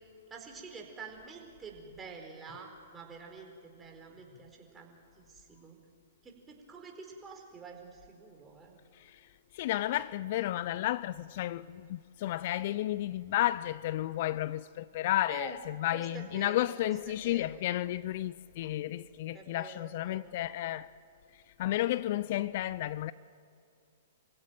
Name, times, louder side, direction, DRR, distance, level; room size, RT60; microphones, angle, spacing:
voice 1, 0.3-5.8 6.2-8.8 15.3-15.6 15.9-16.7 17.1-17.6 19.3-20.3, right 5 dB, 15° right, 4.6 m, -48 dB
voice 2, 9.5-20.9 21.6-23.1, left 14 dB, 55° left, 0.5 m, -32 dB
26.5 x 16.5 x 9.2 m
hypercardioid pair, 125°, 0 cm